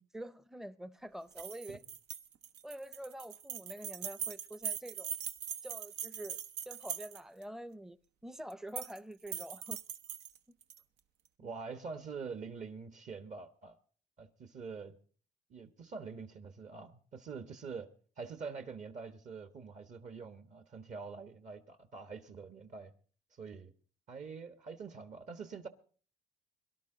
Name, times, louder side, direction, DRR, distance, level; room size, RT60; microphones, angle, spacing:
voice 1, 0.0-1.8 2.6-5.1 5.6-8.0 8.2-9.8 11.4-11.5, right 1 dB, ahead, 0.6 m, -46 dB
sound 1, 1.3-7.4 8.5-9.0 9.3-10.8, right 8 dB, 85° right, 1.0 m, -41 dB
voice 2, 11.4-13.8 14.2-15.0 15.5-17.9 18.2-22.9 23.3-23.7 24.1-25.7, right 5 dB, 45° right, 1.3 m, -45 dB
22.5 x 12.0 x 3.8 m
cardioid pair, 110°, 17 cm